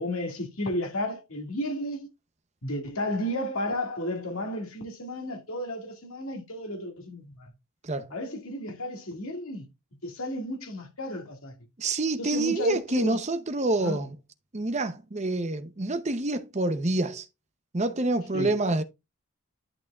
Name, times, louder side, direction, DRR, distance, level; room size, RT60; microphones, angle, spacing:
voice 1, 0.0-2.1 2.6-7.5 8.1-9.7 10.0-11.5 12.2-13.3 13.8-14.0 18.3-18.6, left 1 dB, 75° left, 2.1 m, -33 dB
voice 2, 11.8-14.2 14.5-17.3 17.7-18.8, right 2 dB, 30° right, 0.8 m, -27 dB
11.0 x 6.1 x 2.4 m
head